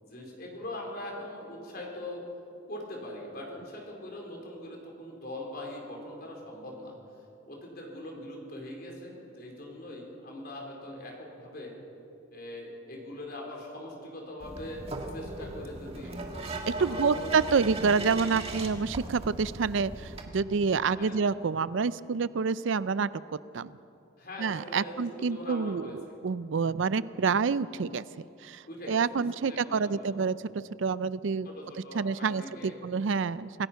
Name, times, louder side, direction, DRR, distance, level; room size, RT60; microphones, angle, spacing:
voice 1, 0.0-2.2 2.7-6.9 7.5-11.7 12.3-14.9 15.1-16.2 16.7-17.3 21.0-21.3 24.2-26.0 28.6-30.2 31.4-32.8, left 1 dB, 45° left, 0 dB, 4.4 m, -42 dB
sound 1, 14.4-20.2, right 2 dB, 30° right, 1.7 m, -38 dB
voice 2, 16.7-23.1 23.5-23.7 24.4-28.0 28.4-31.5 31.9-33.7, right 5 dB, 70° right, 17 dB, 0.4 m, -28 dB
26.5 x 17.0 x 5.8 m, 2.8 s
head